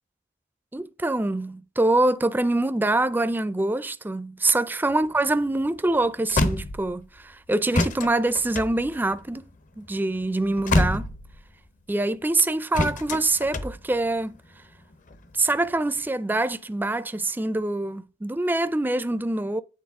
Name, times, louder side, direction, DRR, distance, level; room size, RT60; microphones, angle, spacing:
voice 1, 0.7-9.5 9.8-11.1 11.9-14.4 15.3-19.6, right 2 dB, 10° right, 0.4 m, -25 dB
sound 1, 4.9-7.3 7.7-11.7 12.7-14.4 14.9-15.9, left 2 dB, 45° left, 0.7 m, -27 dB
8.5 x 3.9 x 3.6 m
head